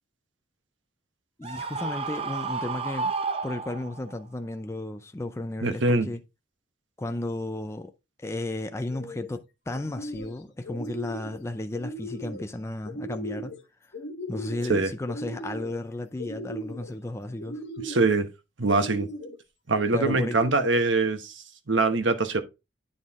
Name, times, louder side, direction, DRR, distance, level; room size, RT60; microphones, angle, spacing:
voice 1, 1.4-3.1 3.4-6.2 7.0-7.9 8.2-13.6 14.3-17.6 19.9-20.4, left 1 dB, 15° left, 0.4 m, -34 dB
Screaming, 1.4-4.1, right 4 dB, 30° right, 0.6 m, -31 dB
voice 2, 5.6-6.1 14.7-14.9 17.8-18.3 18.6-19.1 19.7-22.4, right 3 dB, 75° right, 1.0 m, -23 dB
sound 1, 8.8-9.3 9.7-10.4 10.6-11.4 11.7-12.4 12.8-13.6 13.9-14.7 15.0-15.8 16.2-16.9 17.4-18.1 18.7-19.4 19.9-20.7, equal, 65° left, 1.2 m, -38 dB
9.2 x 4.2 x 3.6 m
head